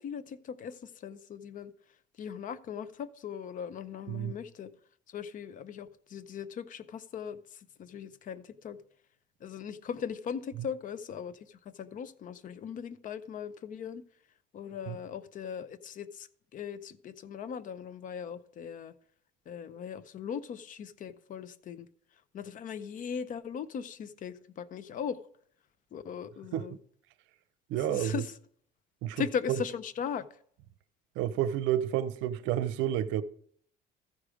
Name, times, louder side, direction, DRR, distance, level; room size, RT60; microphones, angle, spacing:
voice 1, 0.0-1.7 2.2-4.7 5.1-8.8 9.4-14.0 14.5-18.9 19.5-21.9 22.3-25.2 25.9-26.8 27.9-28.4 29.2-30.3, left 7 dB, 45° left, 0.6 m, -39 dB
voice 2, 27.7-28.1 29.0-29.2 31.2-33.2, right 11 dB, 80° right, 0.6 m, -30 dB
14.0 x 4.9 x 5.0 m
cardioid pair, 130°, 20 cm